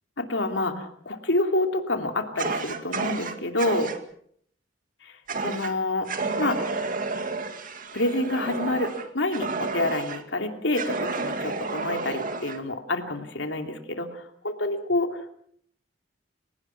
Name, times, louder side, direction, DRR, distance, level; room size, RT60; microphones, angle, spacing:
voice 1, 0.2-3.9 5.0-6.1 6.4-6.7 7.9-15.1, left 1 dB, 70° left, 5 dB, 2.9 m, -28 dB
Fire, 2.4-4.0 5.3-5.7 6.1-10.2 10.7-12.6, right 3 dB, 45° right, 2.1 m, -31 dB
30.0 x 18.0 x 5.9 m, 0.65 s
head